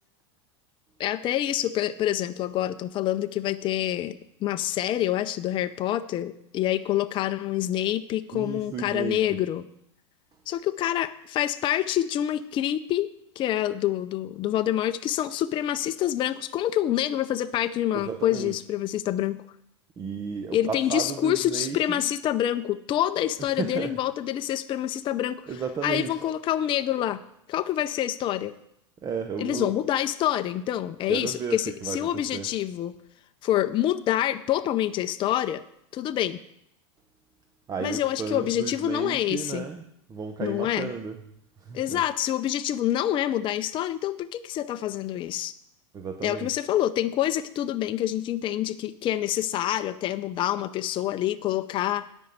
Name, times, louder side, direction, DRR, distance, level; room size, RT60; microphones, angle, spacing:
voice 1, 1.0-9.6 10.5-13.1 13.4-19.4 20.5-27.2 27.5-28.6 29.4-32.9 33.4-35.6 35.9-36.4 37.8-39.6 40.4-40.9 41.7-45.5 46.2-52.1, left 12 dB, 35° left, 10 dB, 0.6 m, -27 dB
voice 2, 8.3-9.2 17.9-18.5 20.0-22.1 23.4-23.9 25.5-26.2 29.0-29.7 31.1-32.5 37.7-39.8 40.1-41.2 41.6-42.0 45.9-46.5, right 6 dB, 25° right, 6 dB, 0.9 m, -33 dB
10.5 x 5.4 x 8.2 m, 0.76 s
hypercardioid pair, 115°, 15 cm